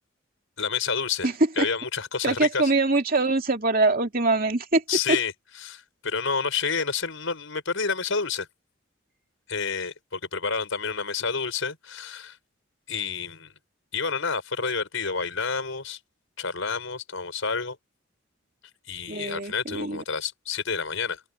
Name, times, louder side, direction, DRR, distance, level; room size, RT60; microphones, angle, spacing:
voice 1, 0.6-1.3 1.6-2.7 4.9-5.3 5.6-8.5 9.5-12.4 12.9-13.5 13.9-16.0 16.4-17.8 18.9-21.2, left 5 dB, 75° left, 4.7 m, -29 dB
voice 2, 2.2-4.8 5.1-5.2 19.1-20.0, right 3 dB, 45° right, 2.7 m, -23 dB
open air
head